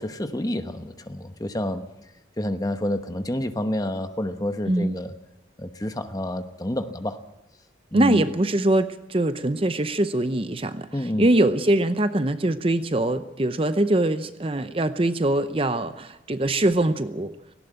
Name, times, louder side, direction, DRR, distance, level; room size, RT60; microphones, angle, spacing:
voice 1, 0.0-1.8 2.4-5.1 5.6-7.2 7.9-8.3 10.9-11.3, left 1 dB, 20° left, 8 dB, 1.0 m, -28 dB
voice 2, 7.9-10.9 11.2-17.3, right 1 dB, 30° right, 11 dB, 0.7 m, -23 dB
18.5 x 16.5 x 8.9 m, 0.95 s
head